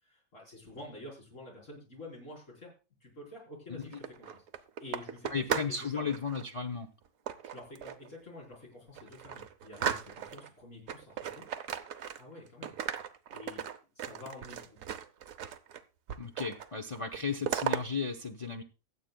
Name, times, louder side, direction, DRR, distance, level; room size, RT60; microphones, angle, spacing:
voice 1, 0.0-2.7 3.0-4.4 4.8-6.1 7.5-11.5 12.2-12.7 13.3-13.6 13.9-14.8, left 2 dB, 70° left, -4 dB, 5.0 m, -48 dB
sound 1, 3.8-5.8 6.1-6.5 7.3-8.1 8.5-8.6 8.9-10.5 10.9-12.4 12.6-15.8 16.1-16.7 16.9-17.8, right 8 dB, 90° right, 1.2 m, -37 dB
voice 2, 5.3-6.9 16.2-18.6, left 5 dB, 30° left, 3 dB, 0.8 m, -35 dB
23.5 x 7.9 x 2.2 m, 0.31 s
omnidirectional pair, 1.4 m